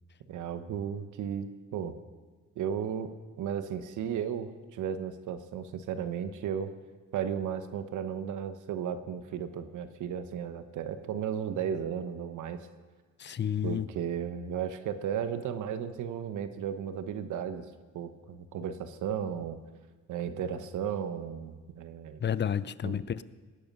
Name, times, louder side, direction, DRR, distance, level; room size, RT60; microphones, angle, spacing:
voice 1, 0.3-2.0 2.6-3.1 3.4-6.7 7.1-12.6 13.6-17.7 17.9-19.6 20.1-22.2 22.8-23.0, right 8 dB, 80° right, 10 dB, 1.2 m, -34 dB
voice 2, 13.2-13.9 22.2-23.2, left 8 dB, 35° left, 17 dB, 0.6 m, -30 dB
18.5 x 11.5 x 5.5 m, 1.4 s
cardioid pair, 90°, 30 cm